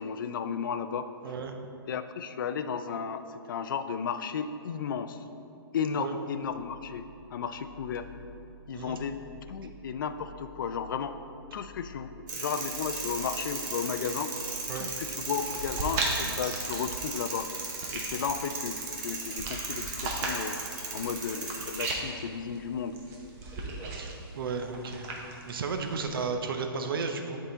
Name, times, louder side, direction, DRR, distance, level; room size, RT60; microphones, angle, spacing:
voice 1, 0.0-1.1 1.9-3.2 3.5-5.2 5.7-7.0 7.3-8.1 8.7-9.2 9.5-11.1 11.5-14.3 14.7-17.5 17.9-20.6 20.9-23.0, left 7 dB, 55° left, 10 dB, 0.4 m, -34 dB
sound 1, 6.3-16.0, equal, 10° left, 0.7 m, -51 dB
sound 2, 12.3-21.9, right 4 dB, 45° right, 1.1 m, -37 dB
sound 3, 14.8-26.3, right 2 dB, 20° right, 0.7 m, -38 dB
voice 2, 24.0-27.4, right 5 dB, 65° right, 5 dB, 0.7 m, -34 dB
8.3 x 3.7 x 3.8 m, 2.7 s
hypercardioid pair, 160°, 13 cm